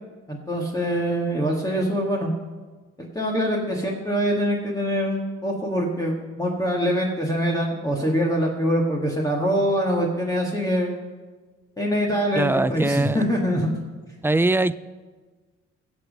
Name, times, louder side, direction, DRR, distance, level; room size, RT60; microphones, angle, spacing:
voice 1, 0.3-2.3 3.2-11.0 11.8-13.8, equal, 10° left, -2 dB, 1.7 m, -24 dB
voice 2, 12.3-13.2 14.2-14.8, right 2 dB, 10° right, 16 dB, 0.3 m, -21 dB
16.0 x 7.1 x 5.3 m, 1.3 s
cardioid pair, 90°, 30 cm